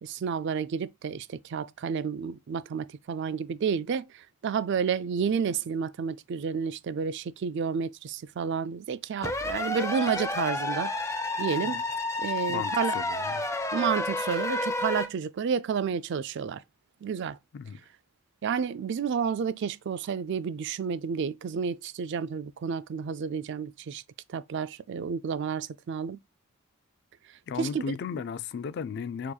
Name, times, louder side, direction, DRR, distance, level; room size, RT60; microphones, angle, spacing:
voice 1, 0.0-10.9 11.4-11.8 12.2-13.0 13.7-16.6 17.0-17.4 18.4-24.0 24.3-26.2 27.6-27.8, right 6 dB, 55° right, 0.3 m, -30 dB
sound 1, 9.2-15.1, left 2 dB, 15° left, 0.7 m, -30 dB
voice 2, 12.5-13.5 17.5-17.9 27.5-29.3, left 6 dB, 50° left, 0.3 m, -35 dB
6.8 x 2.9 x 2.3 m
head